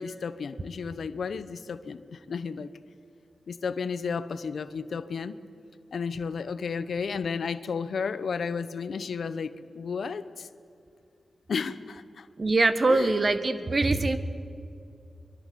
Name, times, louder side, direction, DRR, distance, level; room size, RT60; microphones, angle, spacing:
voice 1, 0.0-2.7 3.5-5.4 5.9-10.5 11.5-12.3 12.9-13.1, left 5 dB, 75° left, 14 dB, 1.0 m, -33 dB
voice 2, 12.4-14.2, right 3 dB, 45° right, 11 dB, 1.7 m, -23 dB
23.5 x 22.5 x 8.5 m, 2.6 s
cardioid pair, 45°, 0 cm